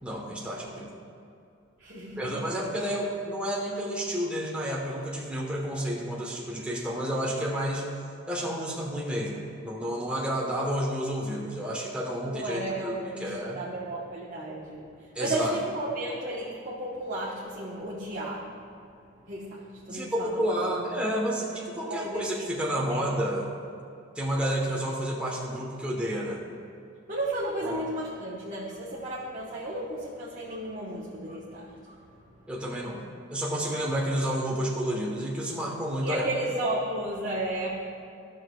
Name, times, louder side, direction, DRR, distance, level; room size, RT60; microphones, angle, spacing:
voice 1, 0.0-0.9 2.2-7.9 8.3-13.6 15.1-15.6 19.9-21.5 21.8-23.5 24.1-26.4 27.6-27.8 32.5-33.0 33.3-36.3, equal, 5° right, -4 dB, 1.0 m, -30 dB
voice 2, 1.8-2.5 12.2-18.5 19.3-20.7 21.8-22.5 22.7-23.0 27.1-32.5 36.0-37.7, right 1 dB, 40° right, -7 dB, 1.1 m, -34 dB
15.0 x 6.4 x 2.3 m, 2.6 s
head